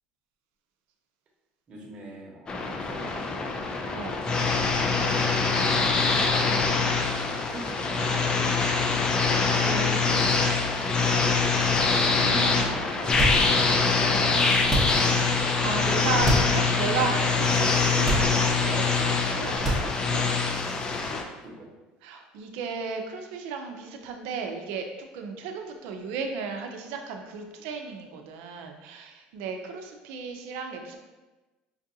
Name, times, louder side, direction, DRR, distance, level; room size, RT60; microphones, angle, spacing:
voice 1, 1.7-3.7 4.9-6.2 7.4-9.5 10.8-11.8 12.3-15.1 21.4-21.7, right 1 dB, 35° right, -3 dB, 1.0 m, -44 dB
sound 1, 2.5-21.2, left 4 dB, 25° left, 0.4 m, -24 dB
voice 2, 9.6-10.4 12.1-12.7 15.3-20.2 22.0-24.9 25.1-31.0, right 5 dB, 80° right, 4 dB, 0.5 m, -34 dB
sound 2, 13.1-13.8 14.6-15.2 16.1-16.6 17.0-17.1 18.0-18.7 19.5-20.2, right 1 dB, ahead, 0.9 m, -27 dB
5.3 x 2.4 x 2.7 m, 1.2 s
cardioid pair, 130°, 3 cm